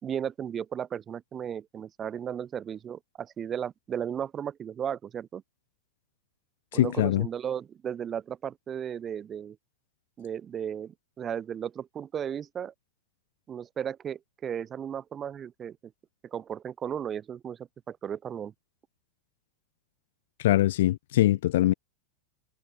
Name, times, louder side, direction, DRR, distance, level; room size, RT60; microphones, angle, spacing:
voice 1, 0.0-5.4 6.7-9.6 10.2-12.7 13.5-15.8 16.3-18.5, right 8 dB, 25° right, 4.7 m, -35 dB
voice 2, 6.7-7.3 20.4-21.7, left 14 dB, 55° left, 0.9 m, -23 dB
figure-of-eight pair, 90°, 0 cm